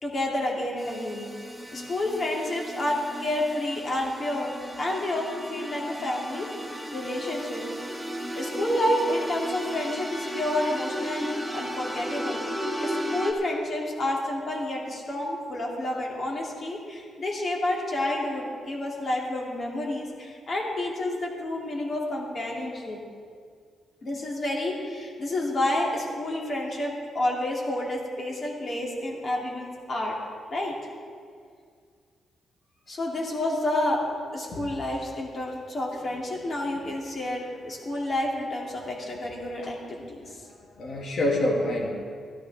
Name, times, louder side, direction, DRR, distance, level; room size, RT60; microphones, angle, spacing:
voice 1, 0.0-1.3 1.7-6.5 6.9-7.6 8.3-12.4 12.8-23.0 24.0-30.2 30.5-30.8 32.9-34.0 34.3-40.4, left 1 dB, 35° left, -2 dB, 2.6 m, -29 dB
sound 1, 0.8-13.3, equal, ahead, 1.2 m, -35 dB
voice 2, 40.2-41.9, left 1 dB, 55° left, -2 dB, 2.6 m, -28 dB
16.0 x 13.0 x 3.5 m, 2.1 s
cardioid pair, 150°, 0 cm